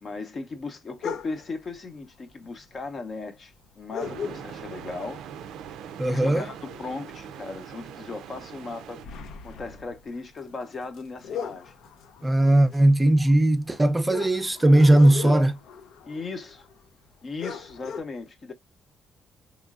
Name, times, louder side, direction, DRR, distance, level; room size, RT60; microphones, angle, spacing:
voice 1, 0.0-5.3 6.0-9.0 9.4-11.7 15.2-15.5 16.1-16.7 17.2-18.5, left 3 dB, 45° left, 0.7 m, -37 dB
sound 1, 1.0-1.6 2.6-2.7 2.9-3.0 3.9-4.8 5.2-5.5 5.8-7.4 7.8-8.0 8.4-16.8 17.1-17.2 17.4-18.0, left 6 dB, 80° left, 0.6 m, -38 dB
sound 2, 4.0-9.1, right 8 dB, 85° right, 0.4 m, -41 dB
voice 2, 6.0-6.5 12.2-15.5, right 1 dB, 15° right, 0.5 m, -18 dB
3.6 x 3.0 x 2.4 m
cardioid pair, 90°, 0 cm